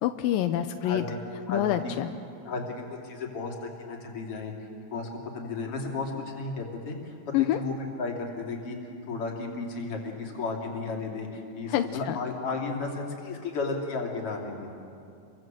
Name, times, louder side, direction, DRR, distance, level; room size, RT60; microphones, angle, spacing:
voice 1, 0.0-1.0 1.5-2.1 7.3-7.6 11.7-12.2, left 12 dB, 85° left, 8 dB, 2.5 m, -26 dB
voice 2, 0.8-1.2 1.5-1.9 2.5-14.7, left 3 dB, 40° left, 0 dB, 3.8 m, -34 dB
29.0 x 23.5 x 7.8 m, 2.6 s
omnidirectional pair, 4.0 m